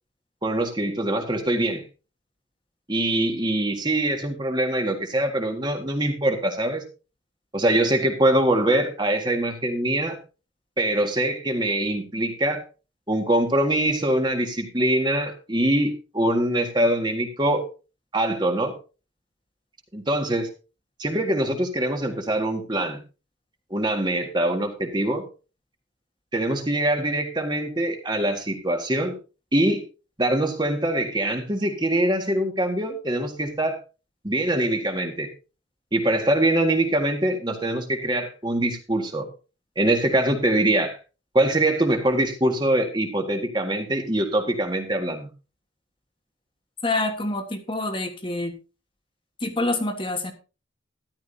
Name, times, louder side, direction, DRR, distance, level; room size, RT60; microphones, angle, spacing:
voice 1, 0.4-1.8 2.9-6.8 7.5-10.2 10.8-12.6 13.1-17.6 18.1-18.7 19.9-20.5 21.0-23.0 23.7-25.2 26.3-29.1 29.5-29.8 30.2-33.8 34.2-35.3 35.9-39.3 39.7-41.0 41.3-45.3, right 1 dB, 20° right, 4 dB, 1.8 m, -23 dB
voice 2, 46.8-48.5 49.4-50.3, left 2 dB, 25° left, 6 dB, 1.5 m, -26 dB
13.5 x 11.5 x 2.8 m, 0.33 s
head